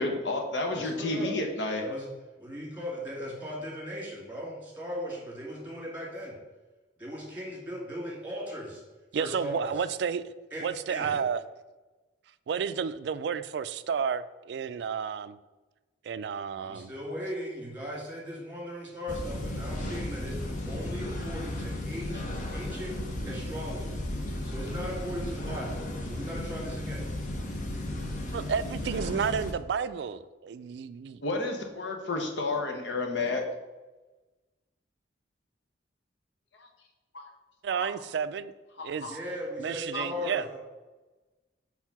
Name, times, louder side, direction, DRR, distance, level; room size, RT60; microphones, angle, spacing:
voice 1, 0.0-1.8 31.2-33.4 37.1-37.3 37.7-37.9 38.8-39.1 39.9-40.0, left 2 dB, 75° left, 3 dB, 1.0 m, -31 dB
voice 2, 0.7-1.3 1.8-2.1 2.4-6.4 7.0-8.8 9.1-9.9 10.5-11.2 16.5-22.9 23.3-24.0 24.4-27.1 39.1-40.6, equal, 10° right, -4 dB, 2.1 m, -38 dB
voice 3, 9.1-10.2 10.6-11.4 12.5-15.4 16.0-16.9 28.3-31.2 37.6-38.5 38.8-39.2 39.6-40.4, right 6 dB, 65° right, 14 dB, 0.3 m, -31 dB
sound 1, 19.1-29.5, left 1 dB, 45° left, 0.8 m, -35 dB
4.6 x 4.2 x 5.8 m, 1.2 s
head